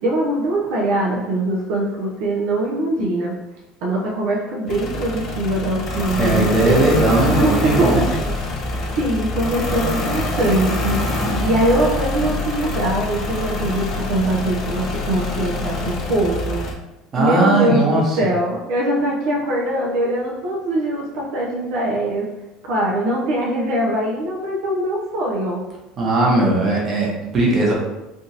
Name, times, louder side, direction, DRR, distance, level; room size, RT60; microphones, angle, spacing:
voice 1, 0.0-3.3 3.8-8.3 9.0-16.7 17.2-22.3 22.6-25.6, right 1 dB, 75° right, -4 dB, 0.7 m, -22 dB
sound 1, 4.7-16.7, left 2 dB, 45° left, 0.6 m, -25 dB
voice 2, 6.2-8.0 17.1-18.0 26.0-27.7, right 2 dB, 35° right, -4 dB, 1.1 m, -18 dB
3.5 x 2.5 x 2.8 m, 0.99 s
supercardioid pair, 120°, 0 cm